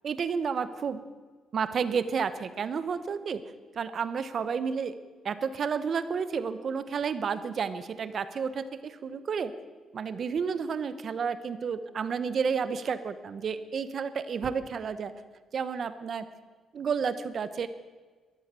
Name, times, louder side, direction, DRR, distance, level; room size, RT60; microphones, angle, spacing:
voice 1, 0.0-1.0 1.5-3.4 3.7-4.9 5.2-9.5 9.9-15.1 15.5-16.3 16.7-17.7, right 6 dB, 50° right, 13 dB, 1.1 m, -31 dB
13.5 x 11.5 x 8.3 m, 1.4 s
cardioid pair, 90°, 0 cm